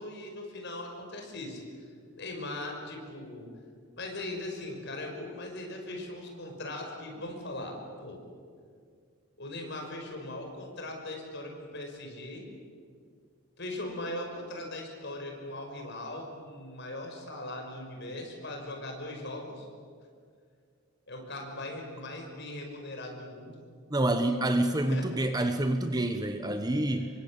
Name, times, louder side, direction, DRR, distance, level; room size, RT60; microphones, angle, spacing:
voice 1, 0.0-1.6 2.1-3.5 4.0-8.2 9.4-12.4 13.6-19.7 21.1-23.6 24.9-25.1 26.9-27.1, left 1 dB, 50° left, 2 dB, 5.8 m, -39 dB
voice 2, 23.9-27.1, right 1 dB, 15° right, 7 dB, 1.1 m, -27 dB
28.0 x 24.0 x 8.9 m, 2.1 s
head